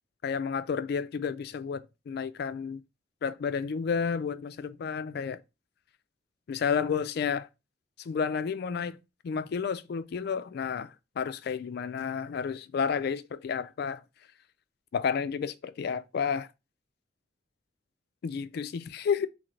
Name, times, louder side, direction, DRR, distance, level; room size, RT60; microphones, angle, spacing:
voice 1, 0.2-2.8 3.2-5.4 6.5-7.5 8.1-9.0 9.2-14.0 14.9-16.5 18.2-19.3, left 6 dB, 55° left, 0.3 m, -31 dB
3.2 x 3.1 x 3.7 m
head